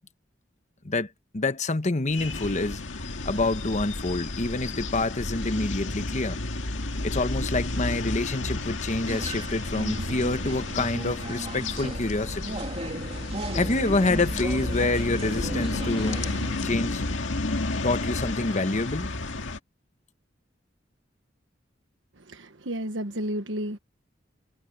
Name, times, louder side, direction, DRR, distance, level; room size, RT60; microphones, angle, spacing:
voice 1, 0.8-6.4 7.0-12.6 13.5-16.2 16.6-17.1 17.8-19.1, left 2 dB, 40° left, 1.1 m, -27 dB
sound 1, 2.1-19.6, left 2 dB, 90° left, 1.9 m, -32 dB
sound 2, 9.1-16.7, right 1 dB, 35° right, 2.9 m, -36 dB
voice 2, 22.3-23.8, equal, 80° right, 1.3 m, -32 dB
head